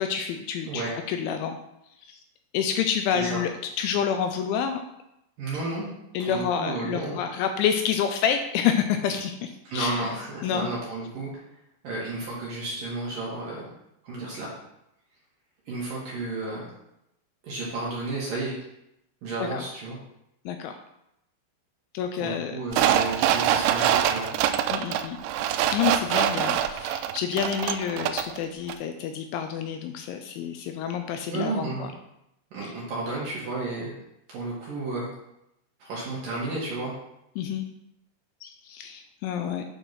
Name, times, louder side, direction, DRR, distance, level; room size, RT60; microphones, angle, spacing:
voice 1, 0.0-1.6 2.0-2.2 2.5-3.5 3.8-4.8 6.1-10.0 10.4-10.7 19.4-19.6 20.5-20.8 21.9-22.6 22.9-23.0 24.7-25.2 25.7-31.9 32.6-32.7 37.4-37.7 38.4-39.7, left 8 dB, 85° left, 6 dB, 2.8 m, -28 dB
voice 2, 5.4-5.9 6.2-7.2 9.6-11.4 11.8-13.6 14.0-14.5 15.7-16.7 17.4-18.5 19.2-20.0 22.1-24.3 31.3-31.9 32.5-33.9 34.3-35.1 35.8-36.9, right 2 dB, 60° right, -6 dB, 2.6 m, -32 dB
sound 1, 22.7-28.4 28.7-28.8, right 10 dB, 85° right, 2.6 m, -24 dB
9.2 x 4.5 x 5.7 m, 0.83 s
omnidirectional pair, 5.8 m